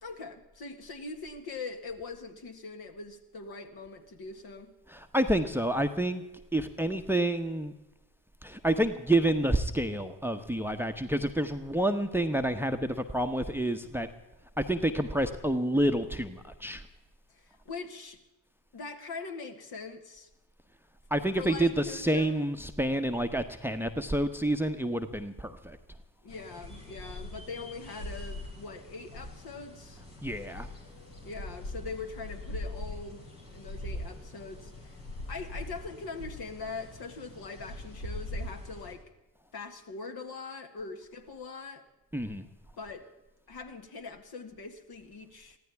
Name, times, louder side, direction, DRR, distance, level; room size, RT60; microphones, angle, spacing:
voice 1, 0.0-4.7 17.3-18.2 18.7-20.3 21.4-22.5 26.2-30.0 31.2-33.3 33.5-35.0 35.3-39.0 39.5-41.9 42.8-43.1 43.5-45.6, left 4 dB, 50° left, 6 dB, 1.8 m, -42 dB
voice 2, 4.9-6.2 6.5-7.7 8.4-14.1 14.6-16.8 21.1-25.8 30.2-30.7 42.1-42.5, right 1 dB, 5° right, 9 dB, 1.0 m, -28 dB
sound 1, 26.3-38.9, left 1 dB, 75° left, 3.7 m, -42 dB
23.5 x 15.5 x 3.5 m, 1.0 s
figure-of-eight pair, 40°, 48 cm